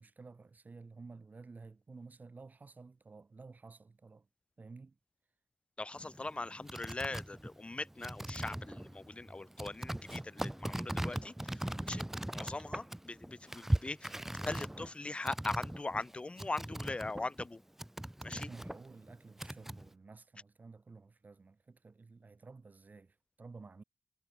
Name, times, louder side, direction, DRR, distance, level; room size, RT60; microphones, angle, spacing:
voice 1, 0.0-4.3 4.6-5.0 18.3-23.8, right 4 dB, 35° right, 3.4 m, -53 dB
voice 2, 5.8-11.3 11.8-12.0 12.3-14.1 14.4-17.6 18.2-18.5, left 2 dB, 25° left, 1.3 m, -40 dB
sound 1, 5.9-17.5 17.8-19.9, right 1 dB, 5° right, 1.3 m, -40 dB
cardioid pair, 75°, 5 cm